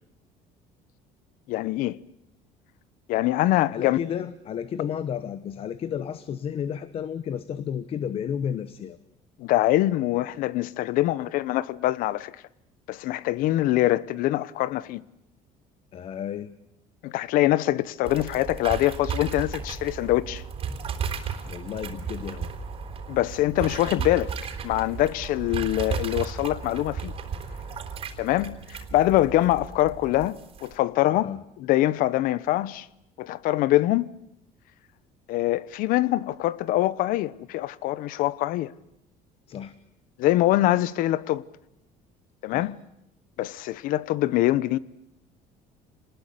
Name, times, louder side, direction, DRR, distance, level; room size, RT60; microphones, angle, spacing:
voice 1, 1.5-2.0 3.1-4.0 9.4-12.3 12.9-15.0 17.0-20.4 23.1-24.3 24.6-27.1 28.2-31.3 31.6-32.9 33.2-34.1 35.3-38.7 40.2-41.4 42.4-42.8 43.4-44.8, left 15 dB, 70° left, 1.0 m, -24 dB
voice 2, 3.7-9.0 15.9-16.5 21.4-22.5 31.1-31.4 39.5-39.7 42.5-42.7, left 8 dB, 40° left, 1.1 m, -32 dB
sound 1, 18.0-30.7, right 6 dB, 40° right, 3.8 m, -34 dB
28.0 x 20.0 x 8.4 m
cardioid pair, 145°, 15 cm